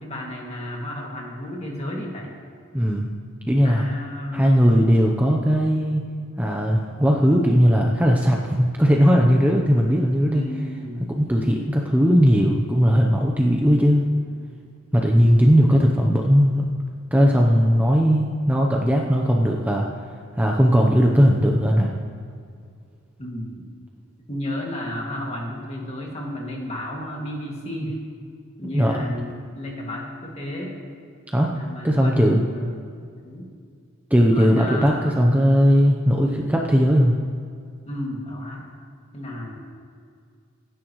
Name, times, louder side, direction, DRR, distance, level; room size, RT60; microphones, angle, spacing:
voice 1, 0.0-2.3 3.6-4.8 10.3-11.1 23.2-23.6 24.3-28.0 28.6-30.8 31.6-32.7 33.2-33.5 34.3-35.7 37.9-38.6 39.1-39.6, left 1 dB, 30° left, -2 dB, 2.3 m, -32 dB
voice 2, 2.7-3.1 3.5-3.9 4.3-6.1 6.4-10.4 11.1-14.0 14.9-16.6 17.1-19.9 20.4-21.9 28.7-28.9 31.3-32.4 34.1-37.2, equal, 5° right, 0 dB, 0.8 m, -18 dB
24.5 x 10.0 x 3.1 m, 2.2 s
head